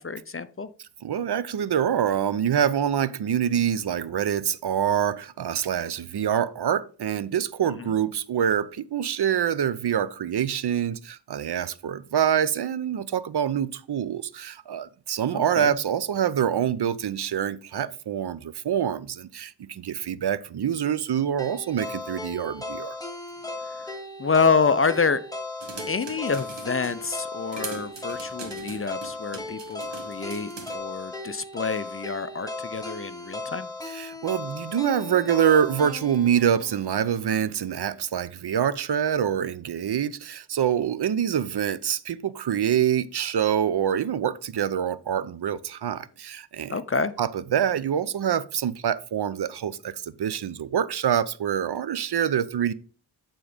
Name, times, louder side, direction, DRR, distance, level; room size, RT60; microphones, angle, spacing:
voice 1, 0.0-0.7 15.3-15.7 23.6-23.8 24.2-25.2 25.9-33.7 46.7-47.1, left 5 dB, 30° left, 0.5 m, -27 dB
voice 2, 0.8-23.0 33.8-46.8 47.2-52.7, right 9 dB, 65° right, 0.6 m, -26 dB
sound 1, 21.4-37.5, left 2 dB, 10° left, 1.2 m, -37 dB
sound 2, 25.6-27.0 27.5-30.8, right 4 dB, 85° right, 1.5 m, -41 dB
9.0 x 3.8 x 5.0 m
wide cardioid pair, 65°, 42 cm